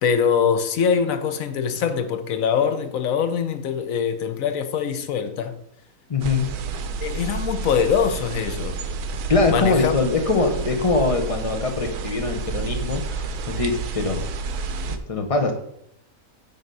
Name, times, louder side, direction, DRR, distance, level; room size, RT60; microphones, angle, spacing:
voice 1, 0.0-5.6 7.0-8.8 9.5-9.9, left 7 dB, 65° left, 1.1 m, -23 dB
voice 2, 6.1-6.5 9.3-14.3 14.9-15.5, left 3 dB, 25° left, 0.9 m, -23 dB
sound 1, 6.2-15.0, right 4 dB, 85° right, 1.2 m, -30 dB
9.6 x 3.9 x 5.4 m
omnidirectional pair, 1.6 m